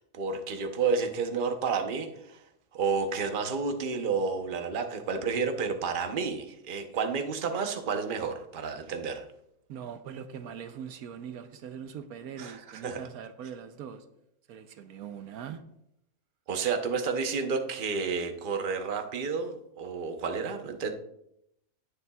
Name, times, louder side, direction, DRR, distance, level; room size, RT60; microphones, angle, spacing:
voice 1, 0.1-2.4 2.7-9.2 12.4-13.0 16.5-20.9, right 5 dB, 40° right, 0.9 m, -31 dB
voice 2, 9.7-14.0 14.5-15.6, right 8 dB, 80° right, 1.2 m, -41 dB
17.5 x 6.9 x 2.3 m
omnidirectional pair, 1.5 m